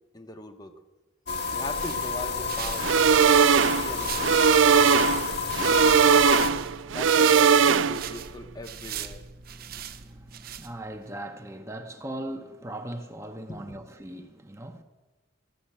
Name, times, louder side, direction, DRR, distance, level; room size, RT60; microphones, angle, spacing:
voice 1, 0.1-0.7 1.5-4.5 5.6-6.4 6.9-9.2 13.5-13.8, left 1 dB, 20° left, 1.0 m, -40 dB
sound 1, 1.3-6.5, left 6 dB, 60° left, 1.5 m, -29 dB
sound 2, 1.6-11.1, right 8 dB, 55° right, 0.7 m, -39 dB
sound 3, 2.8-8.2, right 7 dB, 85° right, 0.4 m, -20 dB
voice 2, 9.5-14.8, right 1 dB, 15° right, 0.8 m, -39 dB
14.5 x 7.2 x 8.7 m
head